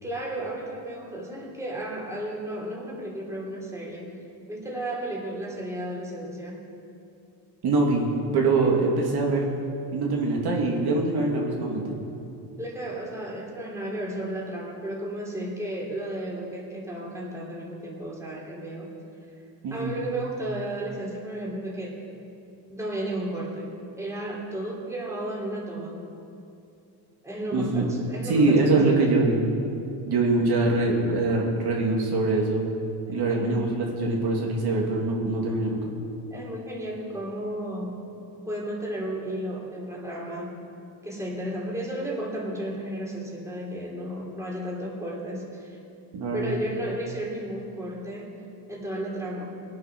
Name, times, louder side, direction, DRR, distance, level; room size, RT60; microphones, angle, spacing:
voice 1, 0.0-4.2 4.5-6.7 12.6-18.9 19.7-22.0 22.7-26.1 27.2-29.1 33.1-33.6 36.3-38.0 38.5-40.6 41.0-45.8 46.3-48.4 48.7-49.4, right 1 dB, 5° right, -3 dB, 3.3 m, -33 dB
voice 2, 7.6-8.1 8.3-9.4 9.9-12.0 19.6-20.0 27.5-27.9 28.2-29.4 30.0-32.6 33.1-35.8 46.1-46.5, right 3 dB, 55° right, -2 dB, 2.8 m, -23 dB
22.0 x 8.8 x 6.1 m, 2.7 s
cardioid pair, 120°, 46 cm